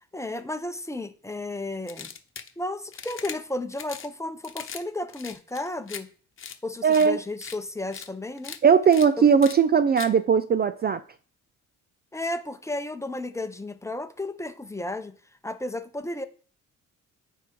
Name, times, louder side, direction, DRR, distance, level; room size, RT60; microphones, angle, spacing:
voice 1, 0.1-2.1 2.6-6.1 6.6-8.6 9.2-9.3 12.1-15.1 15.4-16.2, left 2 dB, 10° left, 0.8 m, -33 dB
sound 1, 1.9-2.5 2.9-3.4 3.7-4.1 4.4-4.8 5.1-6.0 6.4-6.6 6.9-7.1 7.4-7.6 7.9-8.1 8.4-8.6 8.9-9.1 9.4-9.6 10.0-10.1, left 7 dB, 45° left, 1.0 m, -39 dB
voice 2, 6.8-7.2 8.6-11.0, right 6 dB, 35° right, 0.4 m, -19 dB
9.5 x 3.7 x 4.6 m
cardioid pair, 90°, 30 cm